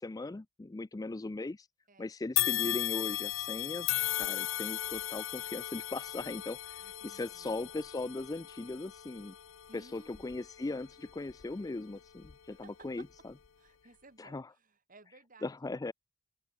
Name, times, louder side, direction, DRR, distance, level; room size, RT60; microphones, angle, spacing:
voice 1, 0.0-1.7 2.0-3.9 4.2-9.3 9.7-13.0 14.2-14.5 15.4-15.9, left 2 dB, 20° left, 0.4 m, -39 dB
sound 1, 2.4-11.7 12.2-12.3 13.3-13.4, left 15 dB, 85° left, 0.6 m, -36 dB
voice 2, 6.8-7.6 9.6-10.4 12.5-13.3 13.6-15.5, right 3 dB, 45° right, 4.9 m, -59 dB
open air
head